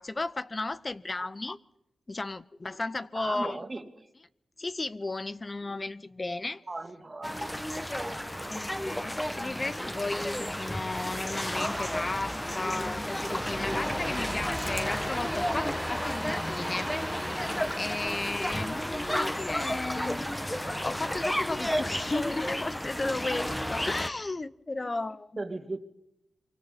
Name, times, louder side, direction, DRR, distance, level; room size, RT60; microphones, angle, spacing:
voice 1, 0.0-1.6 2.1-3.6 4.6-6.6 8.5-16.9 17.8-25.4, left 2 dB, 35° left, 0.7 m, -34 dB
voice 2, 3.1-4.1 6.7-8.6 24.8-24.9 25.4-25.8, right 2 dB, 35° right, 2.2 m, -38 dB
sound 1, 7.2-24.1, equal, 10° left, 1.5 m, -32 dB
Bowed string instrument, 13.6-18.9, right 4 dB, 55° right, 2.2 m, -46 dB
25.5 x 24.0 x 4.2 m
supercardioid pair, 45°, 0 cm